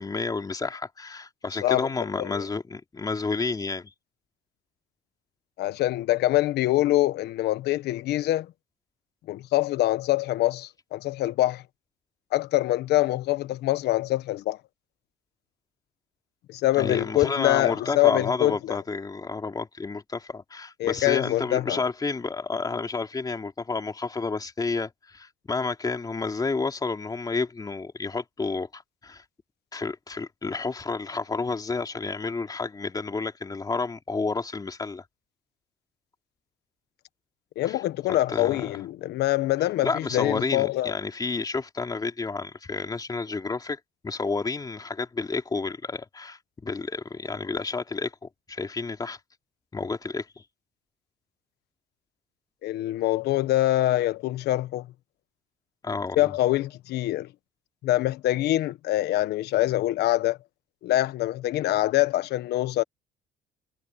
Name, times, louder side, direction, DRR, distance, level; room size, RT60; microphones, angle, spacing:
voice 1, 0.0-3.9 16.8-29.2 29.7-35.0 37.6-37.8 38.1-38.7 39.8-49.2 49.7-50.3 55.8-56.3, left 4 dB, 20° left, 3.3 m, -30 dB
voice 2, 5.6-8.5 9.3-11.6 12.3-14.6 16.5-18.8 20.8-21.8 37.6-40.9 52.6-54.9 56.2-57.3 57.8-60.4 60.8-62.8, left 15 dB, 75° left, 1.3 m, -24 dB
cardioid pair, 110°, 17 cm